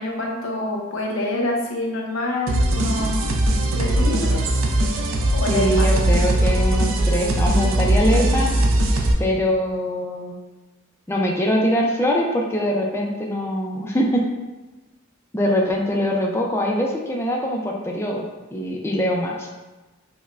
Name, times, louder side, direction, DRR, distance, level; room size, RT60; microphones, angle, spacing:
voice 1, 0.0-3.2 3.7-4.4 5.3-5.9, left 2 dB, 90° left, -1 dB, 0.7 m, -26 dB
sound 1, 2.5-9.1, right 1 dB, 75° right, 0.5 m, -20 dB
voice 2, 5.5-8.5 9.2-10.4 11.1-14.2 15.3-18.3 18.5-19.5, equal, 15° left, -2 dB, 0.4 m, -23 dB
5.3 x 2.1 x 2.4 m, 1.1 s
head